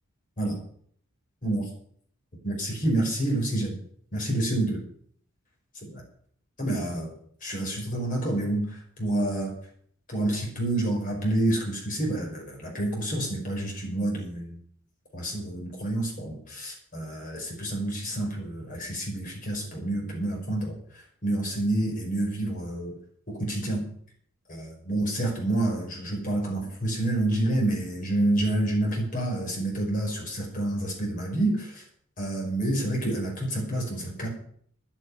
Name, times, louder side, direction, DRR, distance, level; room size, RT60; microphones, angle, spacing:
voice 1, 2.4-3.8 4.1-4.8 5.8-6.0 6.6-7.1 7.4-9.6 10.1-14.6 15.1-20.8 21.2-23.0 23.3-23.9 24.5-31.8 32.2-34.3, right 1 dB, 35° left, -1 dB, 5.4 m, -28 dB
9.8 x 9.2 x 9.9 m, 0.63 s
head